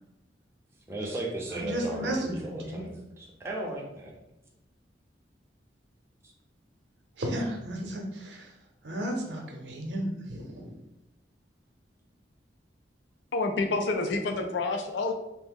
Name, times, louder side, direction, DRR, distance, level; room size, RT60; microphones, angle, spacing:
voice 1, 0.9-4.1, right 1 dB, 15° right, -2 dB, 0.5 m, -36 dB
voice 2, 1.5-2.8 7.2-8.5 8.8-10.7, right 1 dB, 85° right, 2 dB, 0.7 m, -33 dB
voice 3, 13.3-15.1, left 3 dB, 90° left, 5 dB, 0.4 m, -28 dB
2.8 x 2.0 x 3.5 m, 0.91 s
head